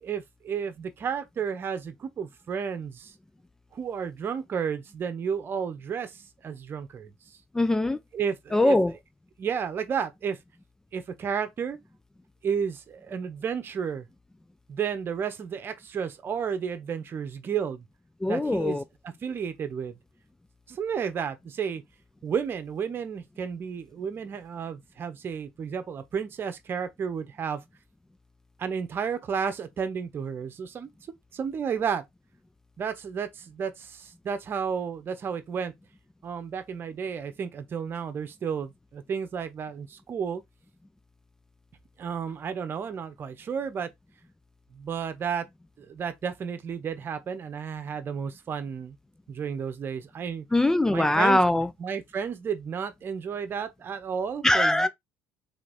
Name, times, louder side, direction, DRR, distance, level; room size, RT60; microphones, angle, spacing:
voice 1, 0.0-3.1 3.7-7.1 8.1-8.8 9.4-10.4 10.9-11.8 12.4-14.1 14.7-17.8 18.3-18.8 19.0-19.9 20.7-21.8 22.2-27.6 28.6-30.9 31.3-32.0 32.8-35.7 36.2-40.4 42.0-43.9 44.7-45.5 45.8-49.0 49.3-50.4 50.9-54.9, right 7 dB, 40° right, 1.0 m, -32 dB
voice 2, 7.6-8.0 8.5-8.9 18.2-18.8 50.5-51.7 54.4-54.9, left 1 dB, 10° left, 0.3 m, -22 dB
3.6 x 3.2 x 4.0 m
hypercardioid pair, 75°, 5 cm